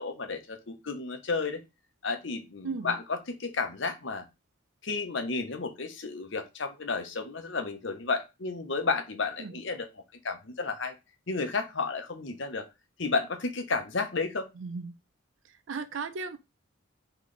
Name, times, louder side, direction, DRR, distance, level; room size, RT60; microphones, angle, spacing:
voice 1, 0.0-1.6 2.0-4.3 4.8-9.9 10.2-11.0 11.3-12.7 13.0-14.5, left 4 dB, 60° left, 0.9 m, -32 dB
voice 2, 2.6-3.0 9.4-9.6 14.5-14.9 15.4-16.4, right 4 dB, 60° right, 0.4 m, -36 dB
4.0 x 3.2 x 3.2 m
head